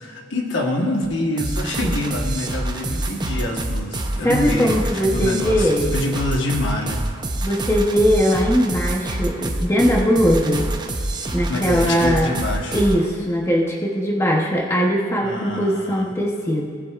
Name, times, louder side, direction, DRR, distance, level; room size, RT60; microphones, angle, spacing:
voice 1, 0.0-4.8 5.1-7.0 11.5-12.8 15.2-16.1, left 1 dB, 60° left, 1 dB, 1.2 m, -26 dB
sound 1, 1.4-13.1, right 1 dB, 20° right, 0.6 m, -26 dB
voice 2, 4.2-5.9 7.4-10.8 11.3-12.3 12.7-16.7, equal, 15° left, -1 dB, 0.8 m, -20 dB
18.0 x 7.5 x 2.4 m, 2.3 s
head